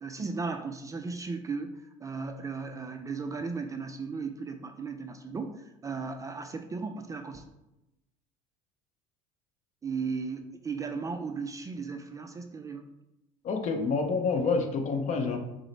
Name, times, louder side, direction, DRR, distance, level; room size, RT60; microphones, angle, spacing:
voice 1, 0.0-7.4 9.8-12.9, right 4 dB, 20° right, 6 dB, 0.3 m, -36 dB
voice 2, 13.4-15.4, left 4 dB, 45° left, 6 dB, 0.7 m, -28 dB
4.8 x 2.0 x 4.0 m, 0.92 s
hypercardioid pair, 85°, 16 cm